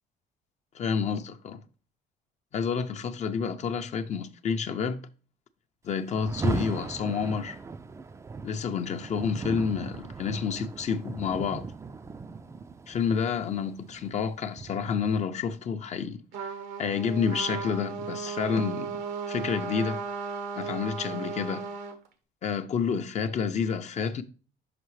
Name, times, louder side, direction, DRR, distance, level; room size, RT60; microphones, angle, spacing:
voice 1, 0.7-1.6 2.5-5.0 5.8-7.6 8.4-11.7 12.9-16.5 16.8-19.0 19.3-20.0 20.6-21.7 22.4-24.2, left 6 dB, 45° left, 0.5 m, -29 dB
Rain, 6.1-15.2, right 4 dB, 15° right, 0.3 m, -37 dB
Trumpet, 16.3-22.0, right 5 dB, 90° right, 1.0 m, -35 dB
5.8 x 5.4 x 3.1 m
cardioid pair, 110°, 17 cm